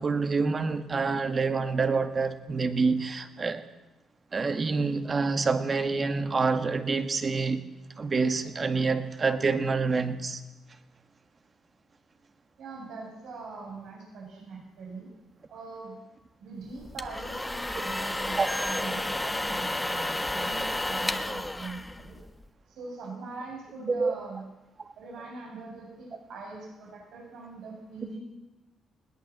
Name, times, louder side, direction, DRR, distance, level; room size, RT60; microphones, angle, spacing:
voice 1, 0.0-3.6 4.3-7.7 8.0-10.4 18.4-18.5 23.9-24.1 24.8-24.9, right 4 dB, 35° right, 1.9 m, -27 dB
voice 2, 12.6-15.1 15.5-16.0 16.4-22.2 22.7-24.4 25.0-28.2, right 3 dB, 80° right, 7.9 m, -42 dB
sound 1, 16.8-22.5, left 1 dB, 10° left, 1.3 m, -32 dB
21.0 x 18.0 x 7.5 m
cardioid pair, 90°, 0 cm